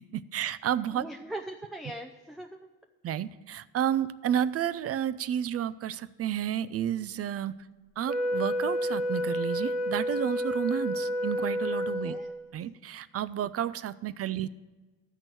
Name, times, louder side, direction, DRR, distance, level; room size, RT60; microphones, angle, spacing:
voice 1, 0.1-1.0 3.0-7.5 8.0-12.1 12.5-14.5, right 10 dB, 50° right, 16 dB, 0.5 m, -31 dB
voice 2, 0.9-2.7 11.9-12.3, right 1 dB, ahead, 1 dB, 0.5 m, -41 dB
Wind instrument woodwind instrument, 8.1-12.5, equal, 30° right, 1.1 m, -30 dB
13.0 x 4.5 x 7.7 m, 1.2 s
cardioid pair, 90°, 30 cm